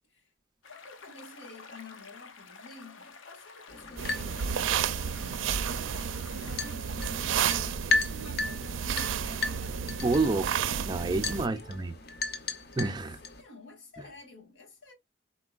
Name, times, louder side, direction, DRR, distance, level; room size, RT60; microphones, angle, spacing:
sound 1, 0.6-6.8, left 4 dB, 90° left, 0.7 m, -50 dB
voice 1, 0.7-10.1 11.4-11.8 13.2-14.9, left 2 dB, 75° left, 1.7 m, -50 dB
sound 2, 3.7-13.4, left 3 dB, 55° left, 0.7 m, -36 dB
sound 3, 4.0-11.5, right 7 dB, 90° right, 0.4 m, -32 dB
voice 2, 10.0-11.9 12.8-13.2, right 3 dB, 20° right, 0.4 m, -29 dB
4.4 x 3.9 x 2.3 m
head